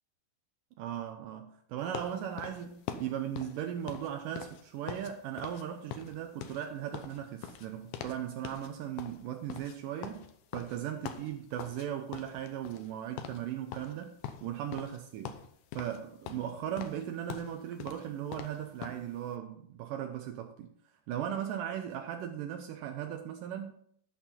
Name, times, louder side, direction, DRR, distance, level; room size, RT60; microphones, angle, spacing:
voice 1, 0.8-10.2 10.5-14.2 14.4-15.4 15.8-20.7 21.1-23.7, right 10 dB, 90° right, 1.9 m, -37 dB
sound 1, 1.9-5.1 5.4-5.6 5.9-8.2 8.4-8.7 9.0-11.9 12.1-12.9 13.2-13.4 13.7-15.0 15.2-16.0 16.3-19.0, left 9 dB, 85° left, 1.8 m, -43 dB
13.0 x 5.6 x 4.3 m
omnidirectional pair, 4.7 m